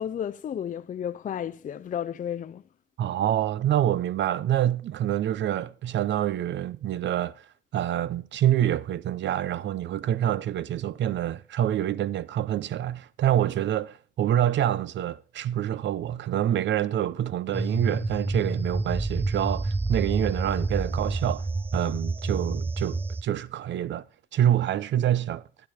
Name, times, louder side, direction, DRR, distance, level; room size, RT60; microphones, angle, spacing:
voice 1, 0.0-2.6, left 9 dB, 40° left, 0.5 m, -32 dB
voice 2, 3.0-7.5 7.7-21.5 21.7-24.0 24.3-25.4, right 11 dB, 65° right, 0.7 m, -26 dB
sound 1, 17.5-23.2, right 2 dB, 10° right, 0.5 m, -29 dB
12.0 x 9.0 x 4.9 m
cardioid pair, 90°, 20 cm